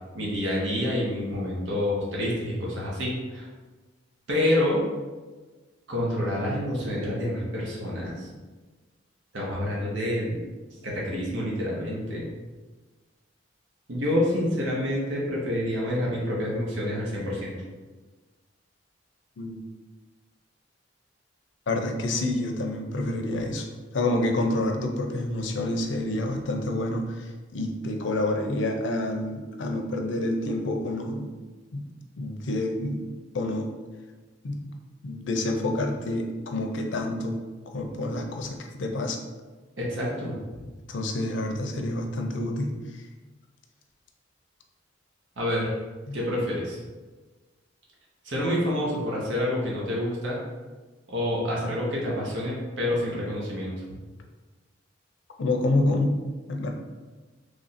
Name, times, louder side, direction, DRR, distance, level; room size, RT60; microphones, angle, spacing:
voice 1, 0.1-3.5 4.3-4.8 5.9-8.3 9.3-10.5 10.8-12.3 13.9-17.6 39.8-40.7 45.4-45.8 46.1-46.8 48.2-50.4 51.1-53.7, left 1 dB, 80° right, -4 dB, 0.9 m, -28 dB
voice 2, 21.7-23.7 23.9-31.3 31.7-31.8 32.2-33.7 34.4-34.7 35.0-39.2 40.9-42.7 46.1-46.2 55.4-56.2 56.5-56.7, left 1 dB, 70° left, 3 dB, 0.5 m, -28 dB
3.2 x 2.5 x 4.1 m, 1.3 s
head